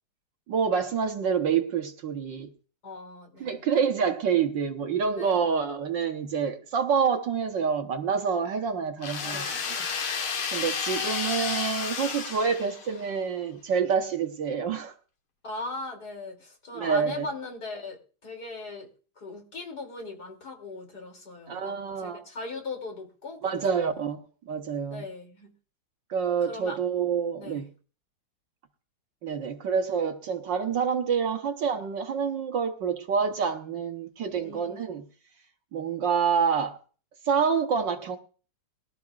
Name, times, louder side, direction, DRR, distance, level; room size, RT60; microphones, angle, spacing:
voice 1, 0.5-2.5 3.4-9.8 10.5-14.9 16.7-17.3 21.5-22.2 23.4-25.0 26.1-27.7 29.2-35.1 35.7-36.8 37.2-38.2, right 6 dB, 60° right, 1.6 m, -27 dB
voice 2, 2.8-3.6 5.2-5.5 9.2-9.6 15.4-18.9 19.2-24.0 24.9-25.5 26.5-26.8 27.4-27.6 34.3-34.8, left 3 dB, 45° left, 3.3 m, -39 dB
sound 1, 9.0-13.1, left 6 dB, 80° left, 2.3 m, -31 dB
23.5 x 12.5 x 2.4 m
omnidirectional pair, 2.3 m